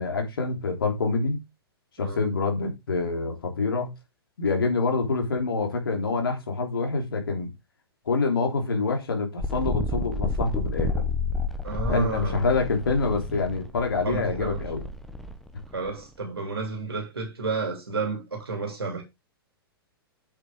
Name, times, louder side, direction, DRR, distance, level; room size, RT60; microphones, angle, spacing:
voice 1, 0.0-1.4 2.0-3.9 4.4-7.5 8.1-11.0 11.8-14.8, left 4 dB, 65° left, 3.2 m, -26 dB
sound 1, 9.4-16.0, left 2 dB, ahead, 1.0 m, -31 dB
voice 2, 11.6-12.4 14.0-14.6 15.7-19.0, right 4 dB, 75° right, 2.9 m, -31 dB
8.3 x 6.4 x 3.6 m
figure-of-eight pair, 105°, 13 cm